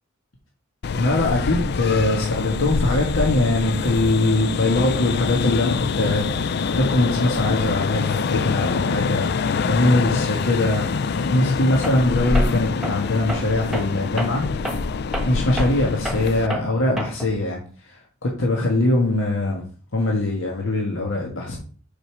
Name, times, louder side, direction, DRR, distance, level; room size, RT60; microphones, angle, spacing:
sound 1, 0.8-16.5, left 5 dB, 55° left, 0.4 m, -25 dB
voice 1, 0.9-14.7 15.2-19.6 19.9-21.6, left 2 dB, 80° left, -1 dB, 1.5 m, -22 dB
Tools, 11.8-12.1 12.3-17.4, right 1 dB, ahead, 1.3 m, -31 dB
5.3 x 5.0 x 6.1 m, 0.41 s
head